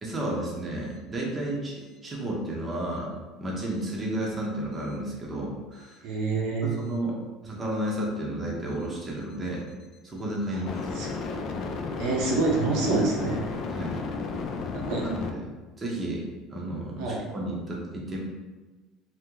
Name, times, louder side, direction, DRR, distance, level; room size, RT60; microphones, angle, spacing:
voice 1, 0.0-6.0 6.6-9.6 10.0-10.7 13.7-14.0 15.0-15.4 15.8-16.2 16.5-18.2, right 1 dB, 20° right, -3 dB, 0.7 m, -32 dB
sound 1, 5.8-6.0 10.7-15.3, left 4 dB, 45° left, 0.4 m, -33 dB
voice 2, 6.0-6.7 10.5-10.6 11.0-11.1 12.0-13.4 14.7-15.0 17.0-17.2, right 3 dB, 75° right, -2 dB, 0.7 m, -26 dB
2.9 x 2.1 x 3.6 m, 1.2 s
cardioid pair, 125°, 0 cm